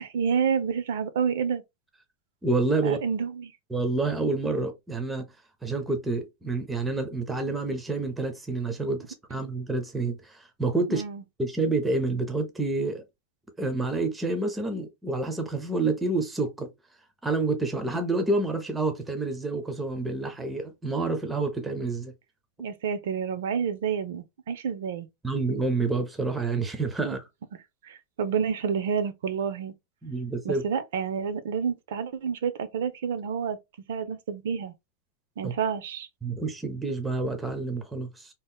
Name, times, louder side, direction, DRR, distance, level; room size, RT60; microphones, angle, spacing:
voice 1, 0.0-1.6 2.8-3.5 10.9-11.2 22.6-25.1 27.0-27.2 27.8-29.7 30.4-33.6 33.9-34.7 35.4-36.1, right 7 dB, 80° right, 0.5 m, -29 dB
voice 2, 2.4-3.0 3.7-5.3 5.6-11.0 11.4-13.0 13.6-16.7 17.2-22.1 25.2-27.3 30.0-30.6 35.4-35.5 36.2-38.3, right 3 dB, 5° right, 0.4 m, -28 dB
2.7 x 2.0 x 3.4 m
supercardioid pair, 165°, 0 cm